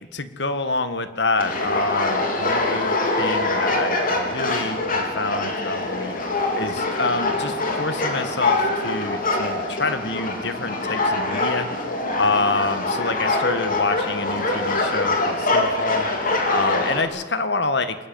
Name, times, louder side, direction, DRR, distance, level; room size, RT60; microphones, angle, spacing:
voice 1, 0.1-6.2 6.6-11.7 12.1-16.1 16.5-18.0, left 3 dB, 70° left, 10 dB, 1.7 m, -27 dB
sound 1, 1.4-17.0, left 2 dB, 55° left, 4.0 m, -24 dB
25.5 x 14.0 x 9.5 m, 1.2 s
head